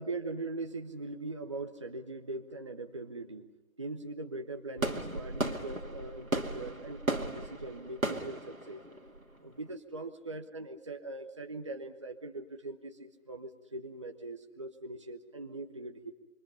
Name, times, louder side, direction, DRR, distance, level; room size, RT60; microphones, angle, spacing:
voice 1, 0.0-3.5 3.8-8.8 9.4-16.1, right 2 dB, 20° right, 5 dB, 1.0 m, -41 dB
sound 1, 4.8-9.7, right 1 dB, 90° right, 2.4 m, -35 dB
27.0 x 25.0 x 5.6 m, 1.0 s
figure-of-eight pair, 155°, 40 cm